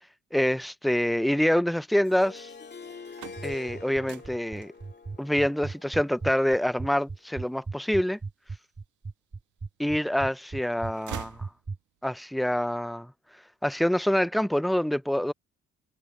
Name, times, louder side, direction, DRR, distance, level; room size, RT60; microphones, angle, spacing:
voice 1, 0.3-2.5 3.4-4.7 5.2-8.2 9.8-11.5 12.0-13.1 13.6-15.3, equal, ahead, 0.5 m, -26 dB
Harp, 2.0-7.0, left 5 dB, 35° left, 2.6 m, -46 dB
sound 1, 2.8-8.8 9.4-10.2 10.5-12.1, right 11 dB, 75° right, 2.2 m, -47 dB
sound 2, 3.4-11.8, right 4 dB, 25° right, 4.5 m, -36 dB
cardioid pair, 90°, 30 cm